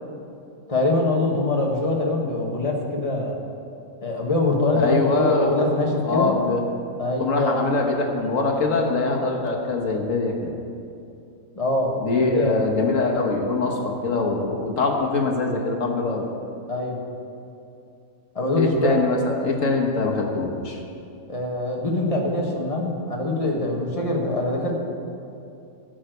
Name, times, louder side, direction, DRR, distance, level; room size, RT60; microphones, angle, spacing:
voice 1, 0.7-3.4 4.0-6.3 7.0-7.6 11.6-12.6 16.7-17.0 18.4-18.9 21.3-24.7, left 2 dB, 25° left, -1 dB, 1.6 m, -23 dB
voice 2, 4.7-5.5 6.0-6.6 7.2-10.5 12.0-16.3 18.6-20.8, left 3 dB, 60° left, 1 dB, 1.7 m, -23 dB
13.0 x 6.4 x 7.9 m, 2.6 s
omnidirectional pair, 1.5 m